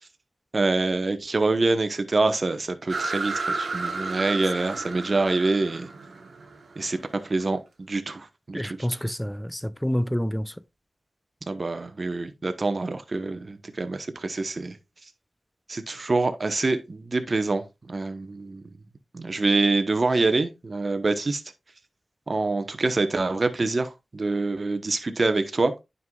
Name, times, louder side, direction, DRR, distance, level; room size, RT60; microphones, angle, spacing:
voice 1, 0.5-5.9 6.8-7.0 7.2-7.6 7.9-8.8 11.5-14.8 15.7-18.6 19.1-21.4 22.3-25.7, right 3 dB, 50° right, 1.0 m, -25 dB
sound 1, 2.9-7.4, right 3 dB, 70° right, 1.2 m, -32 dB
voice 2, 8.5-10.6, equal, 5° left, 0.4 m, -28 dB
9.4 x 5.5 x 2.3 m
cardioid pair, 40°, 0 cm